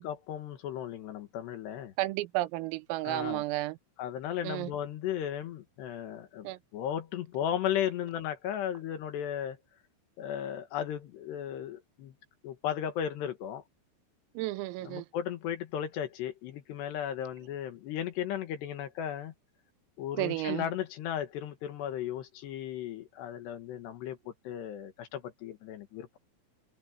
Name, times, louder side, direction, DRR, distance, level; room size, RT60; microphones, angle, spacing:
voice 1, 0.0-1.9 3.0-3.4 4.0-9.6 10.2-12.1 12.4-13.6 14.8-19.3 20.0-26.2, left 10 dB, 65° left, 3.2 m, -35 dB
voice 2, 2.0-3.8 4.4-4.7 6.4-6.6 14.4-15.1 20.2-20.7, right 18 dB, 85° right, 3.5 m, -32 dB
omnidirectional pair, 6.0 m